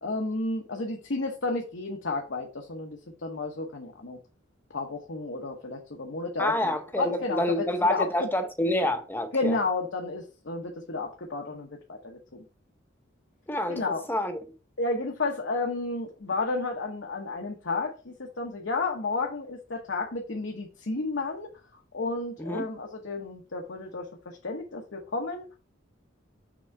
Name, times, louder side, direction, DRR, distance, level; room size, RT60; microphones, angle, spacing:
voice 1, 0.0-4.2 4.7-6.5 6.9-8.3 9.3-12.4 13.7-14.0 14.8-21.5 21.9-25.5, left 3 dB, 75° left, 1.0 m, -32 dB
voice 2, 6.4-9.5 13.5-14.3 22.4-22.7, left 1 dB, 10° left, 0.6 m, -28 dB
6.1 x 3.7 x 4.4 m
head